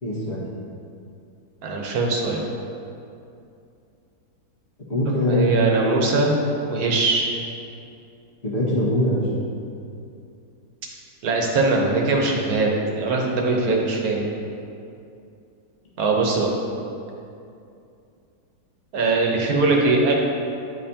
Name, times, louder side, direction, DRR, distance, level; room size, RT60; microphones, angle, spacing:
voice 1, 0.0-0.5 4.9-5.6 8.4-9.3, left 1 dB, 40° left, -7 dB, 1.8 m, -22 dB
voice 2, 1.6-2.4 5.3-6.4 6.7-7.3 11.2-14.3 16.0-16.5 18.9-20.1, right 3 dB, 70° right, 0 dB, 1.3 m, -21 dB
9.6 x 5.4 x 2.8 m, 2.6 s
omnidirectional pair, 1.7 m